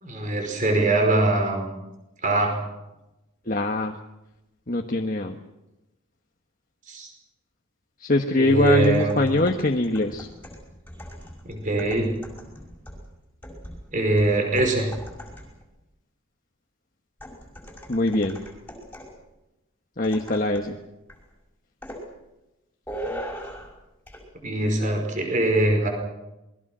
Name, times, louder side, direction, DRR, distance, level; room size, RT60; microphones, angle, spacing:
voice 1, 0.0-1.8 2.2-2.6 6.9-7.1 8.4-9.2 11.4-12.2 13.9-14.9 24.4-25.9, right 2 dB, 35° right, 3 dB, 5.2 m, -22 dB
voice 2, 3.5-3.9 4.7-5.4 8.0-10.3 17.9-18.4 20.0-20.8, left 2 dB, 40° left, 2 dB, 1.3 m, -23 dB
sound 1, 8.6-15.7 17.2-19.2 20.0-20.8 21.1-21.3 21.8-22.1 22.9-23.8 24.1-24.2, equal, 10° left, 5.4 m, -40 dB
27.5 x 21.0 x 6.3 m, 0.96 s
head